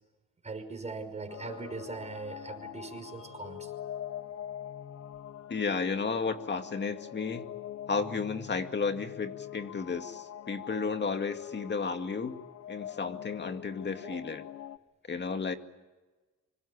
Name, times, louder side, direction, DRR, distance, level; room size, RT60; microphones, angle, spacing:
voice 1, 0.4-3.7 14.0-14.2, right 3 dB, 20° right, 6 dB, 5.8 m, -40 dB
sound 1, 1.3-14.8, left 11 dB, 55° left, 0.9 m, -44 dB
voice 2, 5.5-7.5 7.9-14.5 15.1-15.5, left 4 dB, 35° left, 7 dB, 2.3 m, -33 dB
27.0 x 25.0 x 8.8 m, 1.2 s
cardioid pair, 90°, 30 cm